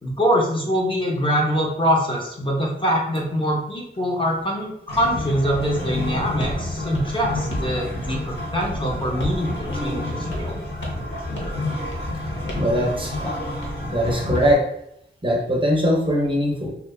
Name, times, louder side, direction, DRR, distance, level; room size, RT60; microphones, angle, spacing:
voice 1, 0.0-10.6, equal, 25° left, -2 dB, 0.5 m, -24 dB
sound 1, 4.9-14.5, left 1 dB, 50° left, 1.2 m, -29 dB
sound 2, 6.4-6.6 6.9-7.7 8.0-8.3 8.6-8.8 9.2-9.5 9.7-9.8 10.3-10.5 10.8-11.1 11.4-11.6 11.9-12.1 12.5-12.7 13.0-13.2 13.6-14.5, left 1 dB, 70° left, 0.6 m, -33 dB
voice 2, 12.6-13.3 13.9-14.6 15.2-16.7, equal, 25° right, -1 dB, 0.5 m, -21 dB
2.7 x 2.2 x 2.2 m, 0.75 s
wide cardioid pair, 90°, 20 cm